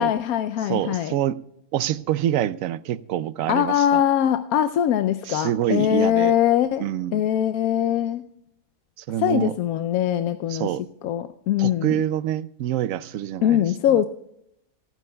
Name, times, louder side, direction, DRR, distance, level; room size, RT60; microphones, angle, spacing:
voice 1, 0.0-1.1 3.5-6.8 7.1-8.2 9.2-10.8 11.0-12.0 13.4-14.1, left 10 dB, 90° left, 1.1 m, -22 dB
voice 2, 0.7-1.4 1.7-4.0 5.3-6.3 6.8-7.2 9.0-9.5 10.5-10.8 11.6-14.0, right 11 dB, 75° right, 0.9 m, -26 dB
26.5 x 9.2 x 2.2 m
omnidirectional pair, 1.5 m